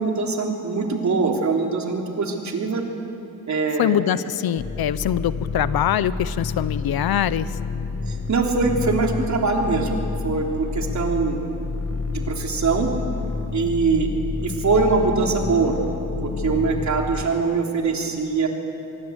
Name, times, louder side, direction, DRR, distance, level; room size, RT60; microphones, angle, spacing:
voice 1, 0.0-2.8 3.5-4.0 8.1-10.0 10.2-11.4 12.1-12.9 13.5-14.1 14.4-15.8 16.2-18.5, right 4 dB, 50° right, 1 dB, 3.5 m, -22 dB
voice 2, 3.8-7.5, left 10 dB, 85° left, 16 dB, 0.8 m, -23 dB
sound 1, 4.6-17.2, left 4 dB, 35° left, 1.5 m, -29 dB
25.5 x 22.0 x 8.1 m, 3.0 s
wide cardioid pair, 120°, 36 cm